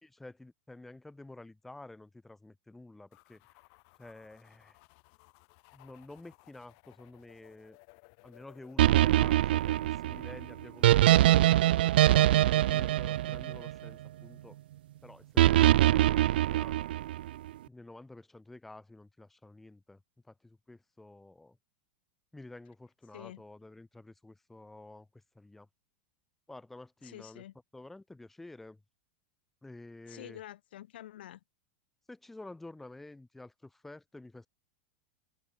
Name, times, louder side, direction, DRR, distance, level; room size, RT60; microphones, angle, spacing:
voice 1, 0.0-3.4 4.0-4.8 5.7-7.8 8.2-11.6 12.1-14.6 15.0-16.8 17.7-20.0 20.2-21.6 22.3-25.7 26.5-27.4 27.7-28.8 29.6-30.4 32.1-34.5, left 2 dB, 5° left, 4.8 m, -50 dB
sound 1, 3.1-11.7, left 40 dB or more, 40° left, 4.2 m, -61 dB
sound 2, 8.8-14.1 15.4-17.3, right 14 dB, 80° right, 0.5 m, -23 dB
voice 2, 27.0-27.5 30.1-31.4, left 13 dB, 85° left, 1.7 m, -47 dB
supercardioid pair, 175°, 5 cm